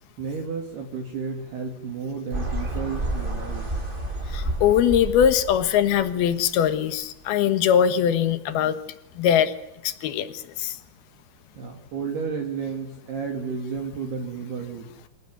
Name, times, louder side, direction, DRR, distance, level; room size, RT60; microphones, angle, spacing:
voice 1, 0.2-3.7 11.6-14.9, right 5 dB, 55° right, 2 dB, 4.1 m, -32 dB
sound 1, 2.3-6.7, right 1 dB, 10° right, 3.4 m, -30 dB
voice 2, 4.3-8.8 9.2-9.5 9.8-10.8, left 9 dB, 65° left, 12 dB, 2.7 m, -21 dB
28.5 x 17.0 x 9.5 m, 0.86 s
omnidirectional pair, 5.9 m